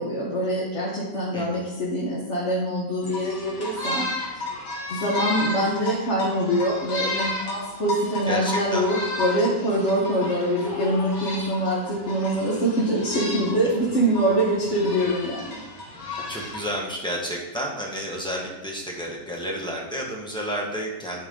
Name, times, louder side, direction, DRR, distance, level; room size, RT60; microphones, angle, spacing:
voice 1, 0.0-4.0 4.9-15.6, right 1 dB, 45° left, -6 dB, 1.6 m, -24 dB
voice 2, 1.3-1.7 8.2-9.0 16.3-21.3, equal, 5° left, -2 dB, 1.3 m, -31 dB
sound 1, 3.0-16.7, left 1 dB, 75° left, 2.3 m, -33 dB
11.0 x 4.7 x 3.8 m, 1.0 s
omnidirectional pair, 1.8 m